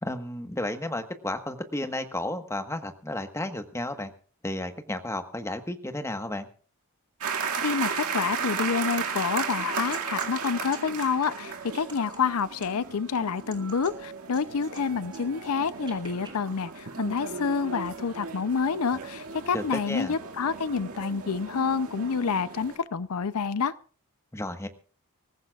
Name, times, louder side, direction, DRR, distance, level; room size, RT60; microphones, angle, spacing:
voice 1, 0.0-4.1 4.4-6.5 19.5-20.1 24.3-24.7, left 1 dB, 15° left, 7 dB, 1.3 m, -33 dB
voice 2, 7.2-23.7, left 5 dB, 75° left, 16 dB, 0.6 m, -28 dB
sound 1, 7.2-22.8, right 5 dB, 75° right, 2.1 m, -35 dB
sound 2, 8.0-8.3 8.6-13.0 13.4-14.8 15.1-16.3, right 4 dB, 20° right, 2.5 m, -48 dB
25.0 x 15.0 x 2.4 m, 0.41 s
head